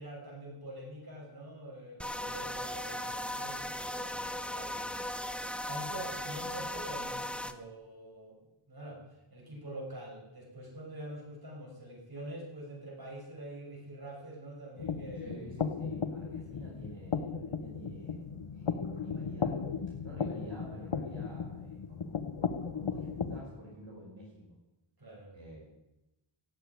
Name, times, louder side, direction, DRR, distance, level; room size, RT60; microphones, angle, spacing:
voice 1, 0.0-5.0 5.7-8.4 8.7-9.0 9.3-15.7 16.5-16.6 25.0-25.3, right 1 dB, 45° right, -3 dB, 6.3 m, -45 dB
sound 1, 2.0-7.5, left 1 dB, ahead, 0.9 m, -37 dB
sound 2, 14.8-23.4, left 6 dB, 75° left, 1.1 m, -36 dB
voice 2, 15.2-19.6 20.0-22.2 22.7-24.6 25.3-25.6, equal, 60° right, -5 dB, 5.5 m, -49 dB
14.5 x 8.9 x 9.5 m, 0.97 s
wide cardioid pair, 55°, 49 cm